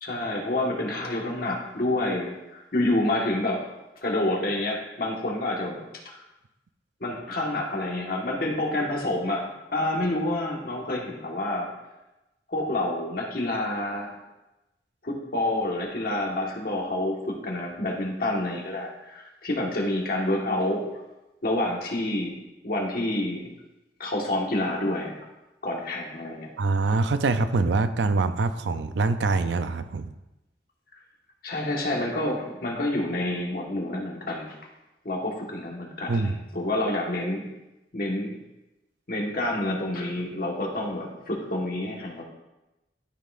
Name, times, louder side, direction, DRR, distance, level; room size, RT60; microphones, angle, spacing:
voice 1, 0.0-3.6 4.0-5.8 7.0-11.7 12.5-14.2 15.0-20.9 21.4-22.3 22.6-23.5 24.0-25.2 25.6-26.5 31.4-34.5 35.0-37.5 37.9-38.3 39.1-42.2, left 1 dB, 55° left, -1 dB, 1.5 m, -28 dB
voice 2, 26.6-30.1 36.1-36.4, right 3 dB, 80° right, 10 dB, 0.5 m, -24 dB
12.5 x 5.5 x 2.5 m, 0.99 s
head